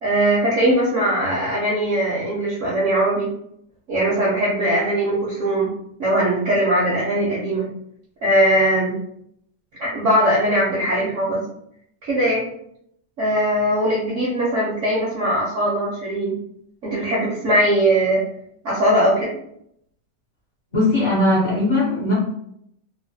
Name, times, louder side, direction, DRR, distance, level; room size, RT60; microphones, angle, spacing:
voice 1, 0.0-3.3 3.9-5.7 6.0-7.7 8.2-8.9 9.8-11.4 12.0-12.5 13.2-16.3 16.8-18.2 18.6-19.3, right 1 dB, 70° right, -5 dB, 0.7 m, -20 dB
voice 2, 20.7-22.1, left 1 dB, 60° left, -6 dB, 0.8 m, -19 dB
3.1 x 2.1 x 2.6 m, 0.72 s
omnidirectional pair, 2.0 m